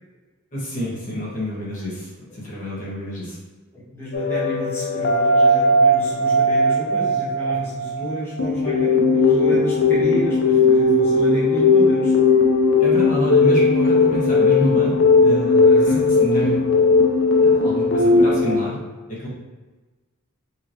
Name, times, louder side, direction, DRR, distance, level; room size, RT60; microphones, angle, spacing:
voice 1, 0.5-3.4 12.8-14.9 15.2-15.9 16.2-16.6 17.4-18.8 19.1-19.3, equal, 35° left, -7 dB, 1.4 m, -28 dB
voice 2, 3.9-12.1 15.6-16.0, equal, 10° left, -10 dB, 1.2 m, -30 dB
sound 1, 4.1-18.6, left 3 dB, 70° left, 0.6 m, -17 dB
5.6 x 2.9 x 3.0 m, 1.3 s
head